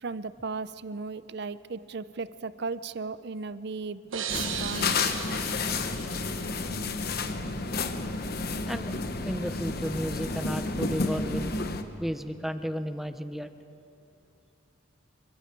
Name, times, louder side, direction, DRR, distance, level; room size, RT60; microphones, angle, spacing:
voice 1, 0.0-4.3 4.6-5.0, right 4 dB, 55° right, 15 dB, 0.6 m, -36 dB
sound 1, 4.1-6.9, right 8 dB, 90° right, 1.3 m, -37 dB
sound 2, 4.3-11.8, left 3 dB, 50° left, 1.1 m, -31 dB
voice 2, 8.7-9.0 9.2-11.5 12.0-13.5, equal, ahead, 9 dB, 0.7 m, -33 dB
27.0 x 23.5 x 4.6 m, 2.7 s
head